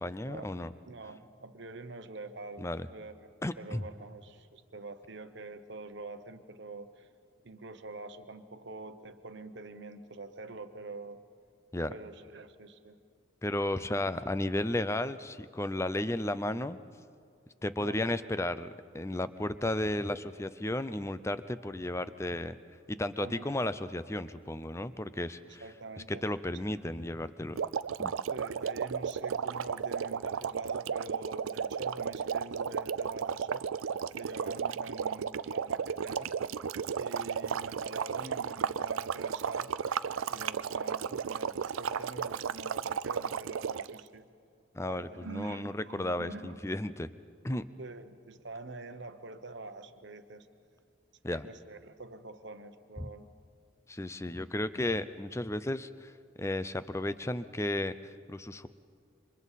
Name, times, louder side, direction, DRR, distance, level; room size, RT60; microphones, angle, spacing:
voice 1, 0.0-0.7 2.6-2.9 3.4-3.9 11.7-11.9 13.4-16.8 17.6-22.5 22.9-25.6 26.1-27.6 28.0-28.1 44.7-47.1 47.4-47.6 51.2-51.5 53.0-53.1 53.9-56.1 56.4-58.7, left 1 dB, 15° left, 13 dB, 0.5 m, -34 dB
voice 2, 0.9-3.3 3.6-7.1 7.4-11.2 11.9-13.0 17.8-18.0 23.2-23.6 25.4-26.2 26.5-26.6 28.3-33.7 34.1-36.3 37.0-39.7 40.3-44.3 44.9-46.6 47.8-50.5 51.3-53.3, right 3 dB, 55° right, 9 dB, 1.1 m, -45 dB
sound 1, 27.5-44.0, right 7 dB, 80° right, 0.4 m, -34 dB
28.5 x 25.5 x 4.2 m, 2.2 s
head